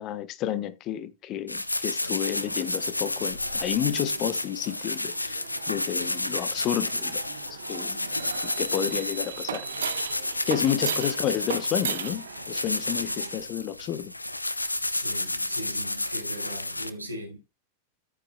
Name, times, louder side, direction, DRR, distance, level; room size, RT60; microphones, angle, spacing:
voice 1, 0.0-7.2 7.5-8.0 8.4-9.7 10.5-14.1, left 11 dB, 35° left, 1.2 m, -31 dB
sound 1, 1.5-16.9, left 2 dB, 85° left, 0.7 m, -31 dB
sound 2, 2.2-13.4, right 8 dB, 65° right, 0.9 m, -38 dB
voice 2, 14.9-17.5, right 1 dB, 85° right, 4.0 m, -39 dB
13.5 x 8.6 x 2.2 m
figure-of-eight pair, 90°, 0 cm